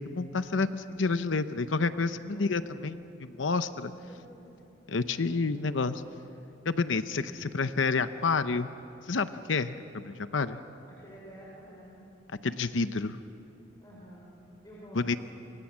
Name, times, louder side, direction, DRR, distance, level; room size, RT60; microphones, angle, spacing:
voice 1, 0.1-3.9 4.9-6.0 6.6-8.7 9.1-10.6 12.4-13.2 14.9-15.2, left 4 dB, 85° left, 11 dB, 0.8 m, -29 dB
voice 2, 3.9-4.5 5.3-5.7 10.9-12.0 13.8-15.2, equal, 20° left, -5 dB, 5.3 m, -50 dB
27.5 x 26.0 x 7.4 m, 2.9 s
head